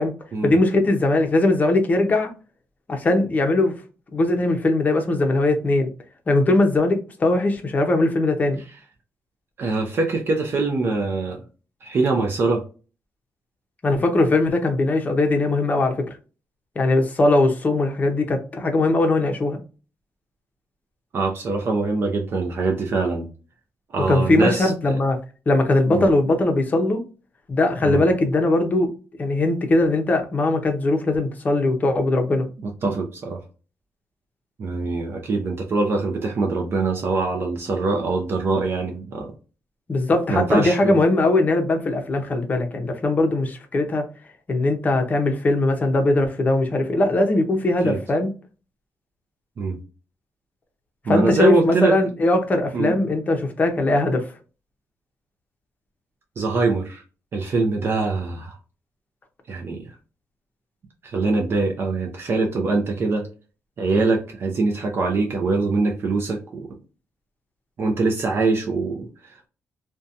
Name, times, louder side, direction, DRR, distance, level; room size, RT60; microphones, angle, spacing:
voice 1, 0.4-2.3 2.9-3.8 4.1-5.9 6.3-8.6 13.8-16.2 16.8-19.6 24.1-25.2 25.5-27.0 27.5-28.9 29.2-32.5 39.9-44.1 44.5-48.3 51.1-54.3, left 2 dB, 30° left, 0.6 m, -20 dB
voice 2, 9.6-11.4 11.8-12.6 21.1-23.3 23.9-25.0 25.9-26.0 27.8-28.0 32.8-33.4 34.6-39.3 40.3-41.0 47.8-48.0 49.6-49.8 51.1-51.9 52.7-52.9 56.4-57.0 57.3-58.6 59.5-59.9 61.0-63.3 63.8-66.7 67.8-69.5, right 3 dB, 45° right, 0.5 m, -23 dB
2.7 x 2.2 x 2.5 m
wide cardioid pair, 145°, 6 cm